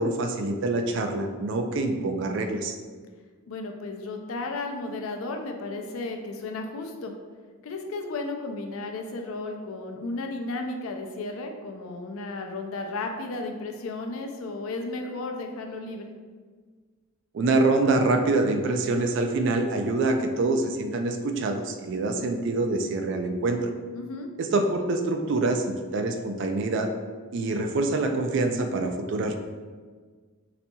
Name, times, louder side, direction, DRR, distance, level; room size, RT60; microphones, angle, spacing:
voice 1, 0.0-2.8 17.3-23.7 24.4-26.9 27.3-29.3, right 2 dB, 55° right, 6 dB, 0.3 m, -25 dB
voice 2, 3.5-7.1 7.6-16.1 23.9-24.3, left 2 dB, 75° left, 4 dB, 0.4 m, -34 dB
4.0 x 2.7 x 2.2 m, 1.5 s
head